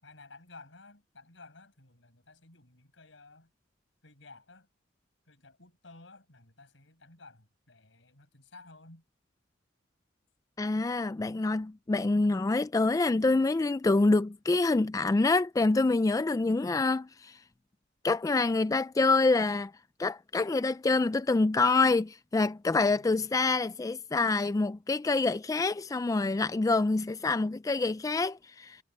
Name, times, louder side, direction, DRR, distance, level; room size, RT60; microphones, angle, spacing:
voice 1, 0.0-3.5 4.0-4.7 5.3-9.0 22.9-23.3, left 3 dB, 75° left, 5.6 m, -54 dB
voice 2, 10.6-17.4 18.0-19.7 20.0-28.8, left 3 dB, 20° left, 0.3 m, -26 dB
head